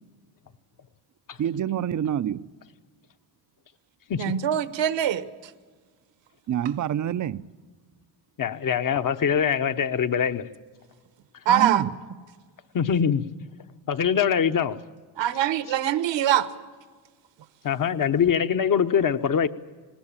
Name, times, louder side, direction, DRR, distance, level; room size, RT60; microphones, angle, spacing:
voice 1, 1.4-2.5 6.5-7.5 11.5-11.9, right 10 dB, 40° right, 0.6 m, -27 dB
voice 2, 4.2-5.5 11.4-11.9 15.2-16.5, right 10 dB, 65° right, 1.3 m, -23 dB
voice 3, 8.4-10.5 12.7-13.2 13.9-14.8 17.6-19.5, left 7 dB, 45° left, 1.0 m, -23 dB
20.0 x 19.0 x 8.8 m
cardioid pair, 85°, 47 cm